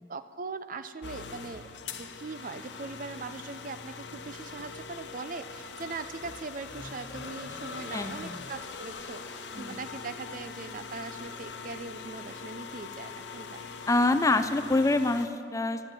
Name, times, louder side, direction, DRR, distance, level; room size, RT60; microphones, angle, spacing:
voice 1, 0.1-1.7 2.0-13.6, right 4 dB, 50° right, 12 dB, 0.5 m, -40 dB
sound 1, 1.0-15.3, left 5 dB, 85° left, 0.9 m, -42 dB
voice 2, 7.9-8.4 9.6-9.8 13.9-15.9, left 2 dB, 20° left, 10 dB, 0.4 m, -26 dB
12.0 x 8.0 x 9.1 m, 2.3 s
head